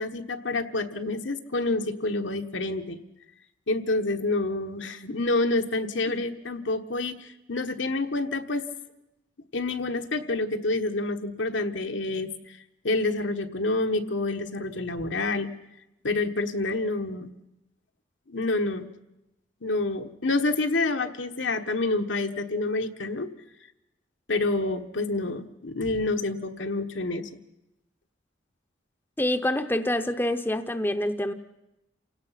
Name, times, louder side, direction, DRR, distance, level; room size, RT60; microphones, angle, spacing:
voice 1, 0.0-3.0 3.7-8.6 9.5-12.3 12.8-15.5 16.0-17.3 18.3-18.9 19.6-23.3 24.3-27.3, left 2 dB, 75° left, 6 dB, 1.3 m, -28 dB
voice 2, 29.2-31.3, left 1 dB, 10° left, 8 dB, 0.7 m, -26 dB
28.5 x 17.5 x 5.8 m, 0.91 s
head